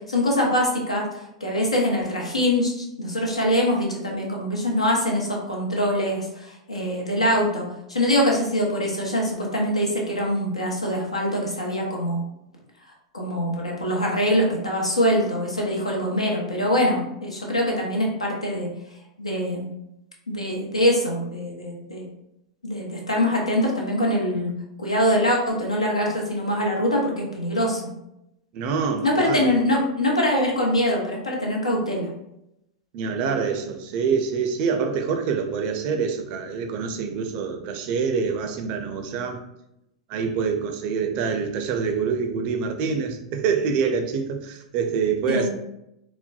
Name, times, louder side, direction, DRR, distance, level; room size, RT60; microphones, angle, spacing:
voice 1, 0.0-12.2 13.1-18.7 19.2-19.6 20.3-22.0 22.6-24.5 24.8-27.8 29.0-32.1 45.3-45.5, equal, 85° left, -1 dB, 0.8 m, -23 dB
voice 2, 28.5-29.6 32.9-39.4 40.1-45.5, right 5 dB, 45° right, 5 dB, 0.5 m, -26 dB
4.1 x 2.1 x 2.3 m, 0.84 s
figure-of-eight pair, 90°, 3 cm